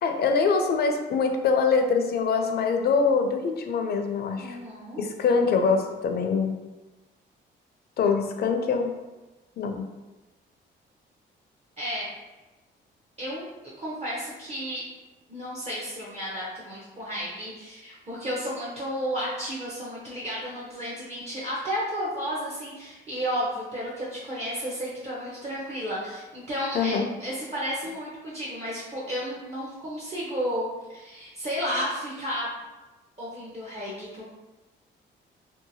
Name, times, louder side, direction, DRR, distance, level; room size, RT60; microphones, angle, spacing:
voice 1, 0.0-4.6 5.0-6.5 8.0-8.9 9.6-9.9 26.7-27.1, left 5 dB, 55° left, 5 dB, 0.4 m, -24 dB
voice 2, 4.3-5.0 11.8-12.1 13.2-13.5 13.8-14.8 15.3-32.5 33.2-34.2, equal, 35° right, -6 dB, 0.7 m, -32 dB
2.8 x 2.2 x 2.6 m, 1.1 s
cardioid pair, 90°, 20 cm